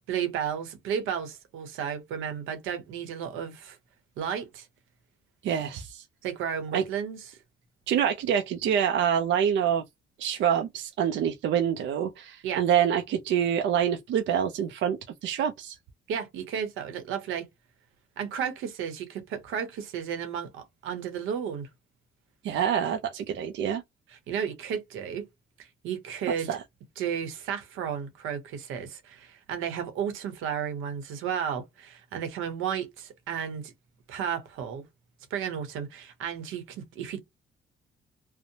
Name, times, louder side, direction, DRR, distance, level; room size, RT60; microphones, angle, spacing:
voice 1, 0.1-3.8 4.2-4.7 6.2-7.2 12.4-12.6 16.1-17.5 18.2-21.7 24.3-25.3 25.6-26.5 27.0-33.7 34.1-34.8 35.3-37.2, right 8 dB, 90° right, 0.8 m, -33 dB
voice 2, 5.4-6.1 6.7-6.8 7.9-9.8 10.2-15.8 22.4-23.8 26.3-26.6, right 9 dB, 70° right, 0.4 m, -26 dB
2.7 x 2.0 x 2.7 m
cardioid pair, 90°, 20 cm